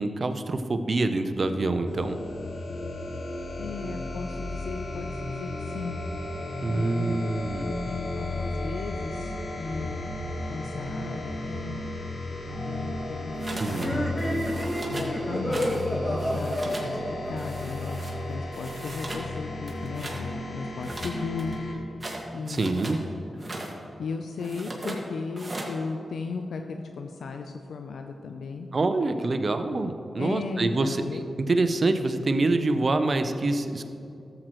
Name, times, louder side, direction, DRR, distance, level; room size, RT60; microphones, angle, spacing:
voice 1, 0.0-2.2 6.6-7.7 13.6-14.0 22.5-23.0 28.7-33.8, right 2 dB, 55° right, 8 dB, 0.7 m, -26 dB
sound 1, 1.9-21.7, left 1 dB, 55° left, 1.4 m, -34 dB
voice 2, 3.6-6.0 6.7-7.2 7.6-10.1 10.3-11.9 12.2-14.1 14.9-21.6 22.3-22.8 24.0-28.7 30.2-31.2, left 4 dB, 80° left, 5 dB, 0.4 m, -36 dB
sound 2, 13.4-13.9 14.2-15.1 15.5-15.9 16.1-16.9 17.4-18.1 18.5-19.3 19.6-20.2 20.8-23.0 23.3-23.7 24.4-25.0 25.4-25.7, right 1 dB, 30° right, 1.8 m, -38 dB
sound 3, 13.7-18.4, equal, 25° left, 2.1 m, -30 dB
13.5 x 7.7 x 3.1 m, 2.7 s
cardioid pair, 50°, 0 cm